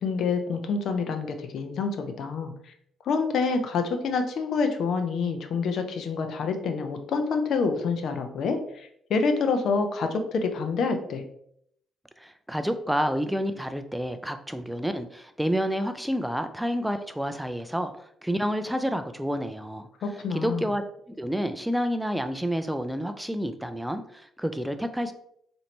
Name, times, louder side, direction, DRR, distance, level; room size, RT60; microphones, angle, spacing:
voice 1, 0.0-2.5 3.1-11.2 20.0-20.7, left 4 dB, 70° left, 7 dB, 0.5 m, -27 dB
voice 2, 12.2-19.9 20.3-20.8 21.1-25.1, equal, 5° right, 8 dB, 0.3 m, -29 dB
4.2 x 2.6 x 2.9 m, 0.69 s
cardioid pair, 90°, 0 cm